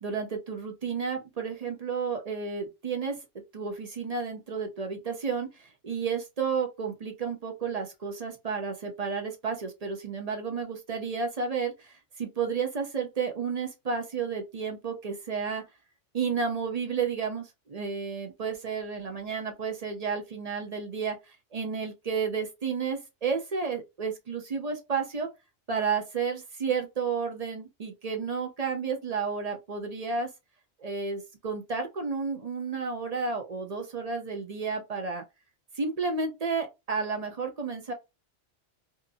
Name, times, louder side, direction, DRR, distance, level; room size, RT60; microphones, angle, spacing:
voice 1, 0.0-3.2 3.5-15.6 16.1-25.3 25.7-30.3 30.8-35.2 35.7-37.9, right 5 dB, 45° right, 0.6 m, -32 dB
2.7 x 2.5 x 2.4 m
omnidirectional pair, 1.2 m